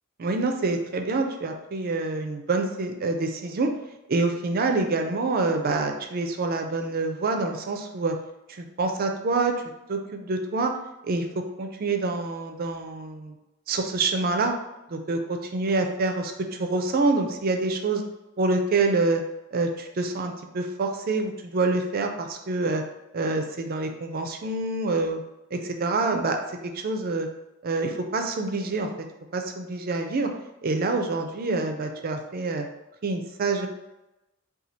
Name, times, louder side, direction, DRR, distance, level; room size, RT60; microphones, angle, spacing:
voice 1, 0.2-3.7 4.1-8.2 8.6-9.6 9.9-10.7 11.0-13.4 13.7-14.5 14.9-18.0 18.4-19.2 19.5-22.8 23.1-25.2 25.5-27.3 27.6-28.9 29.3-30.3 30.6-32.7 33.0-33.7, right 3 dB, 45° right, 5 dB, 0.4 m, -26 dB
4.2 x 2.3 x 2.7 m, 0.96 s
head